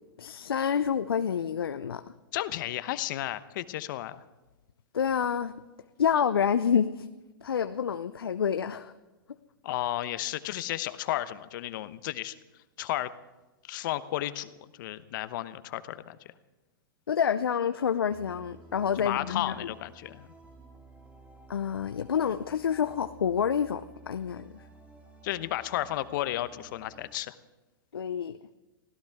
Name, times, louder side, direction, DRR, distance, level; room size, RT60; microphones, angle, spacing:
voice 1, 0.2-2.1 4.9-5.5 6.0-7.1 7.4-8.9 9.3-9.4 17.1-19.7 21.5-24.6 27.9-28.4, left 7 dB, 85° left, 11 dB, 0.6 m, -28 dB
voice 2, 2.3-4.2 9.6-12.4 12.8-13.1 13.7-14.5 14.8-16.2 19.0-20.3 25.2-27.3, left 14 dB, 60° left, 13 dB, 1.0 m, -33 dB
sound 1, 18.1-27.1, right 2 dB, 10° right, 2.2 m, -53 dB
24.0 x 16.5 x 3.6 m, 1.1 s
hypercardioid pair, 110°, 12 cm